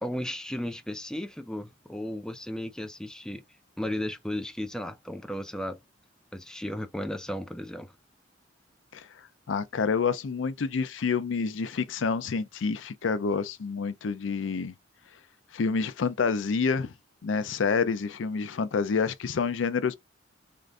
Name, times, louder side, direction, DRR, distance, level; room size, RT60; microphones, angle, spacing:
voice 1, 0.0-3.4 3.8-5.8 6.3-7.9, left 1 dB, 5° left, 0.4 m, -35 dB
voice 2, 9.5-14.7 15.5-16.9 17.2-19.9, left 5 dB, 80° left, 0.5 m, -28 dB
3.8 x 2.5 x 3.3 m
head